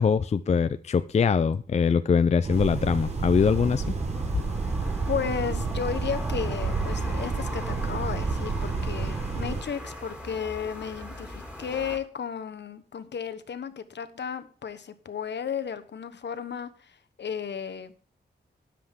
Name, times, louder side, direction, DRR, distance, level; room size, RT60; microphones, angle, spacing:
voice 1, 0.0-3.8, left 6 dB, 40° left, 12 dB, 0.4 m, -23 dB
sound 1, 2.4-9.6, right 4 dB, 35° right, 1.1 m, -30 dB
sound 2, 2.5-12.0, equal, 5° right, 3.4 m, -41 dB
voice 2, 5.1-17.9, left 7 dB, 75° left, 11 dB, 1.1 m, -34 dB
13.0 x 10.0 x 3.6 m, 0.40 s
wide cardioid pair, 170°, 18 cm